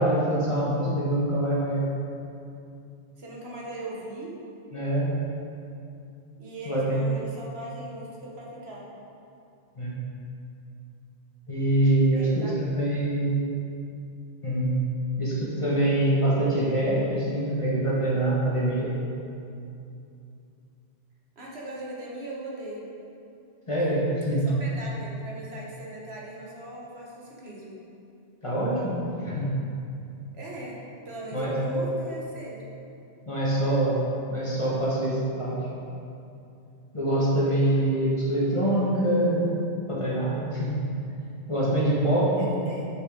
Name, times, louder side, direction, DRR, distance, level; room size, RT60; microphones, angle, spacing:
voice 1, 0.0-1.9 4.7-5.1 6.6-7.0 9.8-9.9 11.5-13.6 14.4-14.8 15.2-18.9 23.7-24.5 28.4-29.5 31.3-31.8 33.3-35.6 36.9-39.4 39.9-40.8 41.5-42.5, right 1 dB, 30° left, -7 dB, 1.7 m, -25 dB
voice 2, 3.2-4.3 6.4-8.9 12.1-12.7 21.4-22.9 24.3-27.8 30.3-30.8 31.0-32.6 42.4-42.9, right 1 dB, 70° right, -4 dB, 1.6 m, -39 dB
6.6 x 6.4 x 5.1 m, 2.6 s
omnidirectional pair, 1.1 m